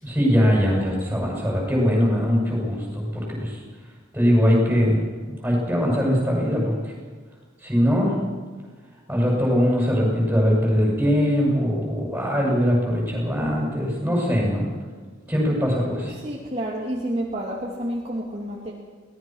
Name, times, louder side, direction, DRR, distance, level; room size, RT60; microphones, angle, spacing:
voice 1, 0.0-3.6 4.1-5.0 5.3-6.9 7.6-8.1 9.1-14.7 15.3-16.1, equal, 10° right, -2 dB, 7.9 m, -21 dB
voice 2, 16.1-18.7, right 1 dB, 30° right, -3 dB, 2.5 m, -29 dB
23.5 x 19.0 x 6.4 m, 1.4 s
head